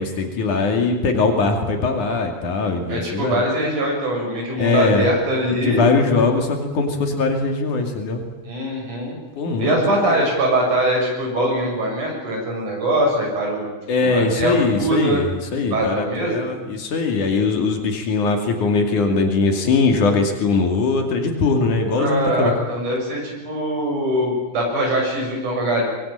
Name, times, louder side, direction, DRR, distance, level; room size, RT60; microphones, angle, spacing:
voice 1, 0.0-3.4 4.6-5.1 5.5-8.2 9.4-10.3 13.9-22.5, left 4 dB, 85° left, 4 dB, 4.2 m, -21 dB
voice 2, 2.9-5.9 8.4-9.2 9.6-13.7 14.0-15.2 15.7-16.5 21.9-25.8, right 1 dB, 85° right, -1 dB, 8.8 m, -22 dB
24.5 x 23.0 x 9.0 m, 1.1 s
omnidirectional pair, 3.5 m